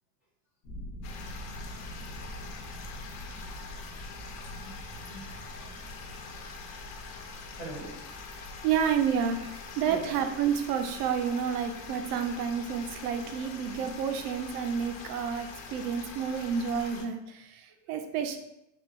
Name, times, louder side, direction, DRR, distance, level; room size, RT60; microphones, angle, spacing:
sound 1, 0.6-13.7, equal, 40° left, 1.0 m, -46 dB
sound 2, 1.0-17.1, left 4 dB, 60° left, 0.7 m, -44 dB
voice 1, 4.4-5.8 7.5-7.9 9.9-10.1 17.7-17.8, right 2 dB, 5° right, -10 dB, 1.1 m, -44 dB
voice 2, 8.6-18.4, right 7 dB, 75° right, 7 dB, 0.7 m, -30 dB
3.7 x 2.4 x 4.1 m, 0.84 s
supercardioid pair, 165°, 47 cm